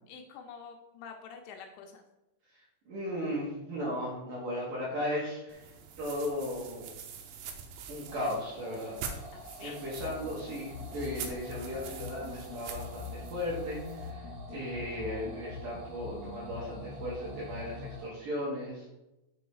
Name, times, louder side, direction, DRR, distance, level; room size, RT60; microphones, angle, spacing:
voice 1, 0.1-2.0 9.3-9.8, left 6 dB, 85° left, 3 dB, 2.7 m, -47 dB
voice 2, 2.9-6.9 7.9-9.2 9.6-19.0, left 1 dB, 60° right, -6 dB, 2.4 m, -36 dB
sound 1, 5.5-14.1, right 6 dB, 90° right, 3.2 m, -45 dB
sound 2, 8.1-18.1, right 2 dB, 35° right, 1.2 m, -49 dB
sound 3, 10.0-18.0, left 5 dB, 65° left, 1.7 m, -44 dB
7.0 x 3.9 x 4.8 m, 0.95 s
omnidirectional pair, 5.4 m